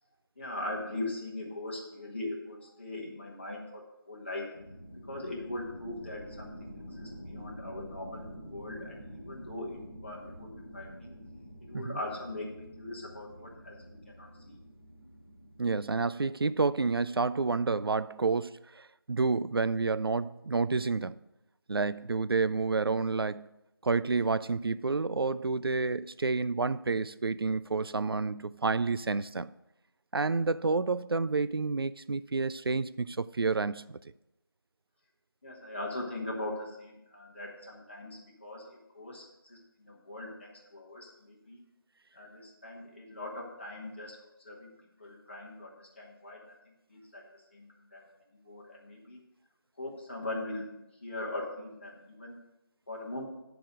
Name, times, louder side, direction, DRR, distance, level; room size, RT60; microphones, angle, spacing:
voice 1, 0.4-4.5 5.1-8.3 8.5-11.1 11.6-13.7 14.1-14.6 35.4-41.6 42.1-44.7 45.0-48.1 48.3-49.2 49.8-50.7 51.0-52.4 52.9-53.2, left 2 dB, 30° left, 1.8 m, -41 dB
sound 1, 4.5-16.8, equal, 5° left, 0.5 m, -48 dB
voice 2, 15.6-21.2 21.7-23.5 23.8-29.5 30.1-34.0, right 4 dB, 75° right, 0.4 m, -29 dB
9.9 x 4.9 x 6.5 m
figure-of-eight pair, 175°, 12 cm